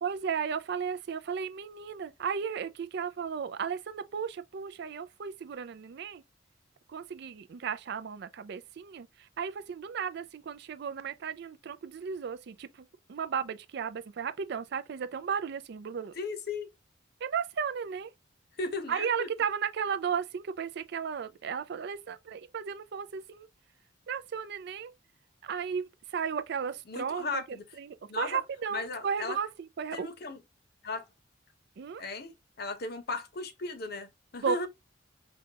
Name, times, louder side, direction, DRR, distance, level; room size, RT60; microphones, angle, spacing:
voice 1, 0.0-6.2 6.9-16.1 17.2-18.1 18.9-23.5 24.1-24.9 25.4-27.4 27.8-30.1 31.8-32.0 34.4-34.7, right 6 dB, 55° right, 0.4 m, -34 dB
voice 2, 16.2-16.7 18.6-19.3 26.9-27.6 28.1-28.4 28.7-29.4 29.9-30.4 30.8-31.1 32.0-34.7, left 3 dB, 55° left, 0.7 m, -36 dB
5.2 x 2.3 x 2.8 m
head